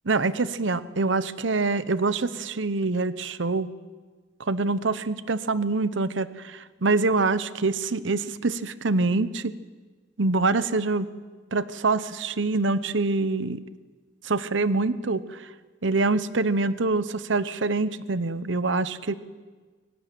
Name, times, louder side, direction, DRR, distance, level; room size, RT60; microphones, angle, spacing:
voice 1, 0.0-3.7 4.4-9.5 10.2-11.1 11.5-13.6 14.2-15.5 15.8-19.1, right 3 dB, 70° right, 14 dB, 0.9 m, -25 dB
23.0 x 18.0 x 9.2 m, 1.4 s
head